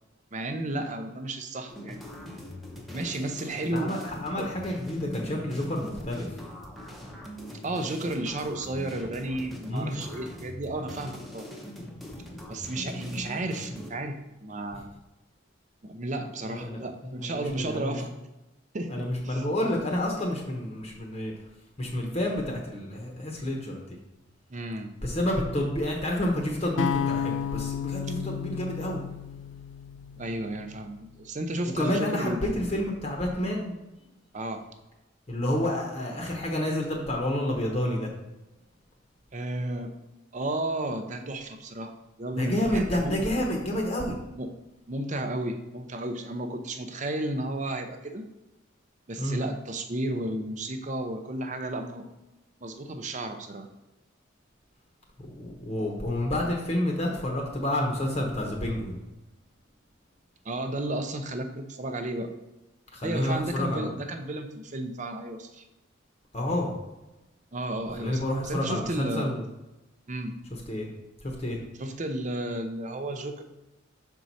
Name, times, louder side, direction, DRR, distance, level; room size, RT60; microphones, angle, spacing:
voice 1, 0.3-2.1 2.9-3.9 4.4-4.5 7.6-11.5 12.5-14.9 15.8-18.1 18.7-19.4 24.5-24.9 30.2-32.5 34.3-34.6 39.3-39.9 40.3-43.2 44.4-44.5 44.9-48.3 49.1-52.1 52.6-53.7 60.4-62.3 63.0-65.6 67.5-69.3 70.1-70.4 71.8-73.4, right 1 dB, 40° right, 6 dB, 0.6 m, -33 dB
sound 1, 1.7-13.9, left 1 dB, ahead, 0.8 m, -41 dB
voice 2, 3.7-6.4 9.7-10.0 16.5-18.0 18.9-21.3 21.8-23.8 25.0-29.0 31.8-33.8 35.3-38.1 42.3-44.2 49.2-49.4 55.3-59.0 62.9-63.9 66.3-66.8 68.0-69.4 70.7-70.9 71.2-71.6, left 1 dB, 30° left, 0 dB, 0.9 m, -29 dB
sound 2, 26.8-30.9, left 8 dB, 65° left, 0.3 m, -32 dB
6.2 x 4.5 x 4.1 m, 0.99 s
head